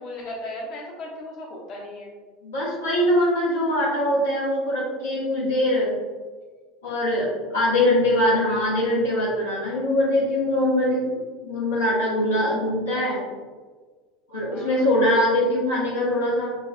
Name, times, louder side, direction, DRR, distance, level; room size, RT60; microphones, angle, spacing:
voice 1, 0.0-2.1 12.9-13.1 14.5-14.8, left 1 dB, 45° left, -1 dB, 1.0 m, -36 dB
voice 2, 2.4-6.0 6.8-7.3 7.5-11.1 11.4-13.2 14.3-16.6, left 1 dB, 70° left, -6 dB, 1.0 m, -22 dB
5.7 x 2.3 x 2.2 m, 1.4 s
figure-of-eight pair, 70°, 0 cm